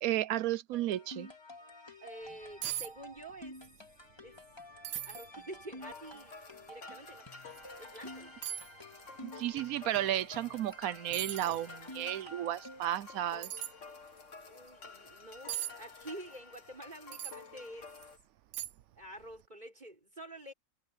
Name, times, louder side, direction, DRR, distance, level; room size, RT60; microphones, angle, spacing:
voice 1, 0.0-1.3 9.2-13.5, right 13 dB, 90° right, 1.1 m, -33 dB
sound 1, 0.7-13.0, equal, 20° left, 4.5 m, -51 dB
voice 2, 2.0-3.6 4.2-4.4 5.0-6.4 6.7-7.3 7.8-8.3 14.5-17.9 19.0-20.5, right 1 dB, 30° right, 6.3 m, -48 dB
sound 2, 2.3-2.4 2.6-2.9 3.2-3.7 4.1-4.2 4.8-5.3 5.9-6.0 7.5-7.6 8.4-8.7 10.6-10.7 11.1-11.6 13.4-13.7 15.5-15.7 17.1-17.4 18.0-18.1 18.5-18.9 19.2-19.4, right 12 dB, 65° right, 0.9 m, -39 dB
sound 3, 5.8-18.2, left 4 dB, 60° left, 2.2 m, -51 dB
omnidirectional pair, 1.4 m